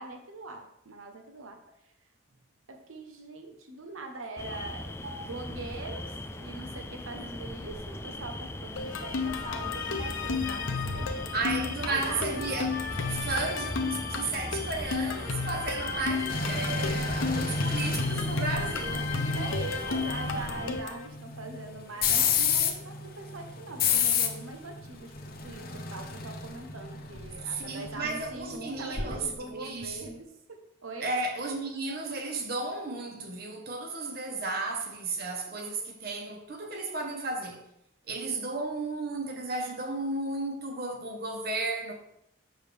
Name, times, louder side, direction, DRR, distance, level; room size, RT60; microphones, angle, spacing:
voice 1, 0.0-1.6 2.7-12.5 13.1-13.2 19.2-25.1 25.4-31.2, right 3 dB, 90° right, 1.0 m, -42 dB
sound 1, 4.4-20.8, left 2 dB, 10° left, 0.3 m, -38 dB
sound 2, 8.8-21.1, left 4 dB, 80° left, 0.7 m, -33 dB
voice 2, 11.3-19.1 27.5-30.0 31.0-37.6 38.1-41.9, right 3 dB, 50° right, 1.1 m, -34 dB
sound 3, 16.3-29.5 29.8-30.1, left 5 dB, 45° left, 0.8 m, -31 dB
6.5 x 6.5 x 3.4 m
head